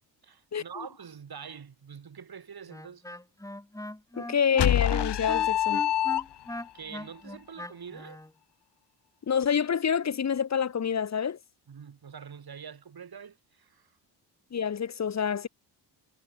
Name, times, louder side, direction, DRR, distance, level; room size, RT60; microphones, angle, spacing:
voice 1, 0.2-3.0 6.7-8.2 11.7-14.0, right 7 dB, 50° right, 7.5 m, -45 dB
Wind instrument woodwind instrument, 2.7-8.3, left 1 dB, 5° left, 3.0 m, -39 dB
voice 2, 4.2-5.8 9.3-11.4 14.5-15.5, left 7 dB, 35° left, 1.2 m, -27 dB
sound 1, 4.6-6.7, left 12 dB, 60° left, 1.0 m, -25 dB
cardioid pair, 70°, 46 cm